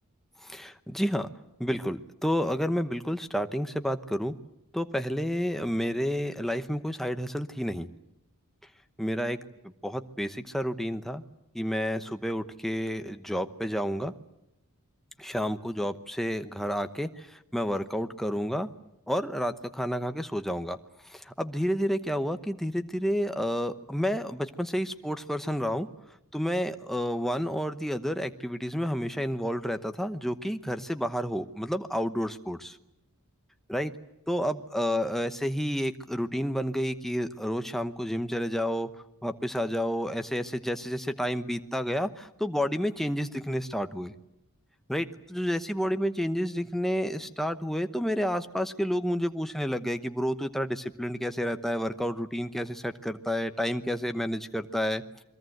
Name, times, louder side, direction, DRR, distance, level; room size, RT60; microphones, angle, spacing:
voice 1, 0.5-1.3 1.6-4.3 4.7-7.9 9.0-9.4 9.8-11.2 11.5-14.1 15.2-17.1 17.5-18.7 19.1-20.8 21.1-25.9 26.3-32.7 33.7-33.9 34.3-38.9 39.2-44.1 44.9-55.0, equal, ahead, 8 dB, 0.9 m, -30 dB
28.5 x 22.5 x 7.9 m, 0.85 s
head